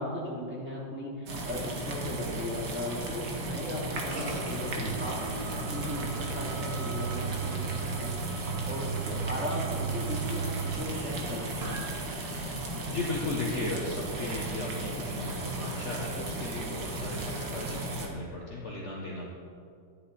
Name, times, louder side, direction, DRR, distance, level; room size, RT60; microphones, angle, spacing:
voice 1, 0.0-5.2 5.6-11.8, left 1 dB, 5° right, -7 dB, 3.0 m, -37 dB
sound 1, 1.3-18.1, right 2 dB, 65° right, 2.1 m, -36 dB
sound 2, 4.1-12.8, right 6 dB, 45° right, 1.7 m, -37 dB
voice 2, 12.9-19.3, left 1 dB, 40° left, -4 dB, 1.5 m, -36 dB
14.0 x 10.5 x 4.3 m, 2.4 s
omnidirectional pair, 2.0 m